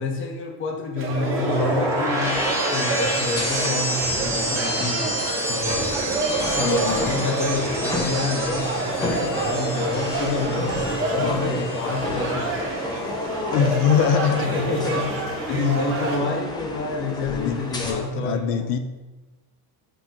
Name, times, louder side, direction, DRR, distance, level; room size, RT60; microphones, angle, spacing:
voice 1, 0.0-5.0 5.5-6.0 6.5-13.8 14.4-15.1 15.5-18.8, left 3 dB, 25° left, 2 dB, 0.8 m, -28 dB
sound 1, 1.0-16.2, right 3 dB, 30° right, 1.2 m, -29 dB
sound 2, 1.1-11.2 11.5-11.9, right 1 dB, 5° right, 1.0 m, -28 dB
sound 3, 2.2-17.9, left 2 dB, 10° left, 0.4 m, -32 dB
voice 2, 6.6-7.1 11.2-11.5 13.5-14.5 15.5-15.7 17.0-18.8, left 8 dB, 75° left, 8 dB, 0.6 m, -24 dB
7.9 x 2.9 x 5.6 m, 1.2 s
cardioid pair, 175°, 45 cm